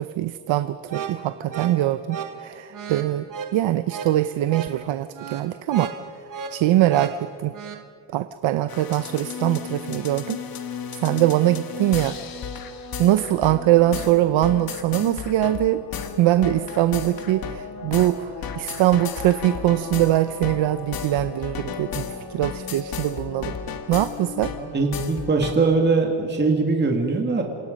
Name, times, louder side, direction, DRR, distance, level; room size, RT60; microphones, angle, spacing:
voice 1, 0.0-3.3 3.5-5.9 6.5-7.5 8.1-10.4 11.0-12.2 13.0-15.8 16.2-23.6 23.9-24.5, right 14 dB, 80° right, 12 dB, 0.8 m, -22 dB
sound 1, 0.8-7.8, right 6 dB, 45° right, 1.4 m, -35 dB
sound 2, 8.7-25.5, left 7 dB, 50° left, 1.6 m, -34 dB
voice 2, 24.6-27.4, right 3 dB, 25° right, 2 dB, 2.1 m, -22 dB
27.5 x 27.0 x 5.3 m, 2.2 s
cardioid pair, 165°, 45 cm